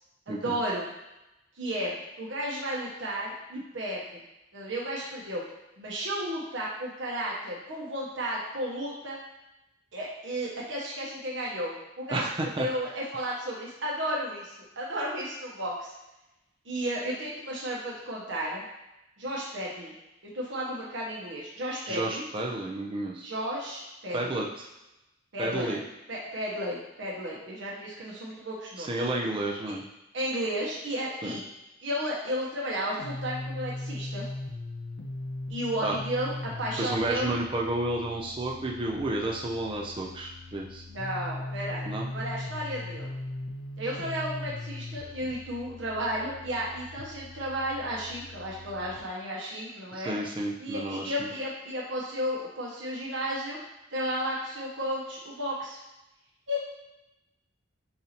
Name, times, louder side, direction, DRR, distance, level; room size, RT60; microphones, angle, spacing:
voice 1, 0.3-0.9 1.6-4.0 4.5-5.4 5.8-9.2 9.9-15.9 16.6-18.6 19.2-19.9 20.3-22.2 23.2-24.4 25.3-25.7 26.1-29.1 30.1-31.4 31.8-34.3 35.5-37.3 40.9-43.1 43.8-50.1 50.6-53.6 53.9-55.8 56.5-56.6, equal, 65° right, -4 dB, 1.0 m, -33 dB
voice 2, 12.1-12.7 21.9-23.3 24.1-24.5 25.4-25.8 28.8-29.8 31.2-31.4 35.8-36.0 36.8-40.8 41.9-42.1 49.9-51.3, right 1 dB, 25° right, -1 dB, 0.5 m, -31 dB
sound 1, 33.0-49.0, left 2 dB, 70° left, 0.6 m, -39 dB
6.8 x 2.7 x 2.9 m, 0.94 s
head